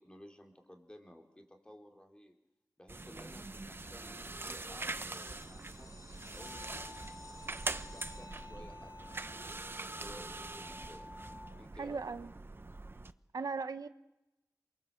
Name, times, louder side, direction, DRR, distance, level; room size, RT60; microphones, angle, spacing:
voice 1, 0.0-2.3 2.8-5.9 6.3-7.0 7.7-8.9 9.3-11.1 11.6-12.0, left 1 dB, 15° left, 4 dB, 4.0 m, -55 dB
sound 1, 2.9-13.1, right 2 dB, 35° right, 1.0 m, -43 dB
sound 2, 5.1-10.8, left 2 dB, 65° left, 4.2 m, -58 dB
sound 3, 6.4-11.5, left 2 dB, 35° left, 3.0 m, -52 dB
voice 2, 11.8-12.3 13.3-13.9, right 4 dB, 85° right, 11 dB, 1.0 m, -37 dB
27.5 x 23.5 x 7.8 m, 0.94 s
wide cardioid pair, 80°, 6 cm